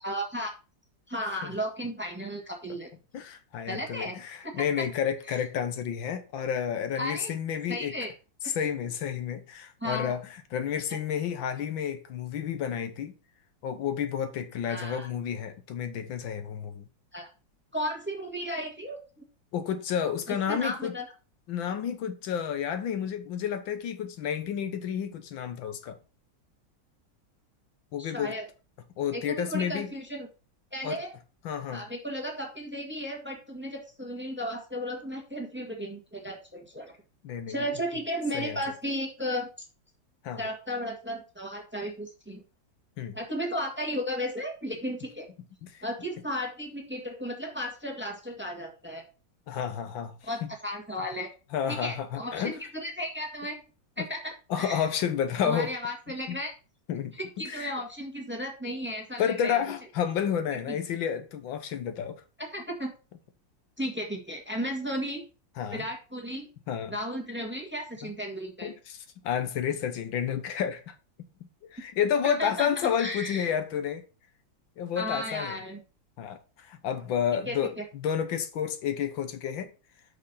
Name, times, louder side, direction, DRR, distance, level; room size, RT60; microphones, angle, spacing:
voice 1, 0.0-0.5 1.1-2.9 3.7-4.1 4.4-4.9 5.3-5.4 7.0-7.3 7.7-8.1 9.8-10.2 14.7-15.1 17.1-17.3 17.7-19.0 20.3-21.0 28.0-28.5 29.1-30.3 30.7-31.2 31.7-37.0 37.5-39.5 40.4-42.4 43.1-45.2 45.8-49.0 50.3-51.3 51.8-53.6 54.0-54.3 54.6-54.9 55.4-56.5 57.2-59.6 60.7-60.8 62.4-62.9 63.8-65.2 65.7-66.5 66.9-68.7 72.2-72.7 73.0-73.5 75.0-75.8 77.5-77.6, equal, 5° right, 1.6 m, -34 dB
voice 2, 3.1-8.0 8.4-10.2 10.5-13.2 13.6-16.9 19.5-21.0 21.5-26.0 27.9-28.4 29.0-29.9 30.8-31.0 31.5-31.9 37.2-37.6 38.3-38.6 40.2-40.4 43.0-43.2 45.6-45.8 49.5-50.5 51.5-52.5 54.0-54.1 54.5-55.7 56.3-56.4 56.9-57.7 59.2-62.2 65.6-65.9 66.7-67.0 68.0-68.1 68.6-71.0 71.7-74.1 74.8-75.6 76.2-79.7, left 8 dB, 80° left, 1.7 m, -31 dB
6.4 x 5.3 x 5.5 m
omnidirectional pair, 2.1 m